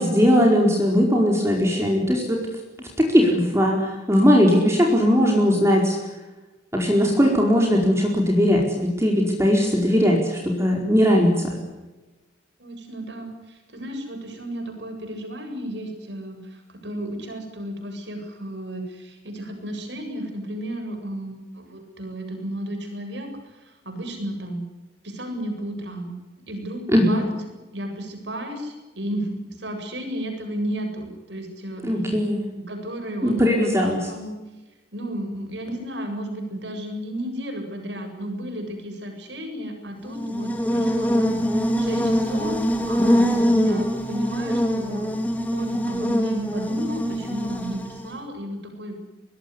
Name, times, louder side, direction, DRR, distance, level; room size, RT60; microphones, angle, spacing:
voice 1, 0.0-2.4 3.0-6.0 6.7-11.5 26.9-27.2 31.8-32.4 33.2-34.0, equal, 15° right, 0 dB, 4.7 m, -19 dB
voice 2, 12.6-24.6 25.0-26.2 26.5-27.2 27.7-31.8 32.7-34.4 34.9-45.1 45.5-49.0, right 1 dB, 70° right, 5 dB, 7.8 m, -33 dB
Buzz, 40.0-48.2, equal, 10° left, 3.7 m, -23 dB
25.0 x 21.0 x 9.9 m, 1.1 s
head